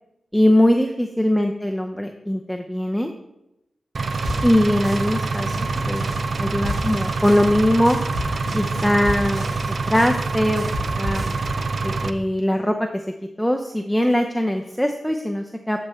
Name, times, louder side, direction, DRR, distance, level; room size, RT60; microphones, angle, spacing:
voice 1, 0.3-3.1 4.4-6.1 6.4-8.0 8.5-9.5 9.9-10.6 11.0-11.2 11.8-12.8 13.4-15.9, left 1 dB, 5° left, 3 dB, 0.6 m, -21 dB
Engine, 3.9-12.1, right 3 dB, 65° right, 0.5 m, -26 dB
sound 1, 4.1-11.5, left 1 dB, 85° right, 3.0 m, -34 dB
12.0 x 4.3 x 3.5 m, 0.88 s
cardioid pair, 45°, 0 cm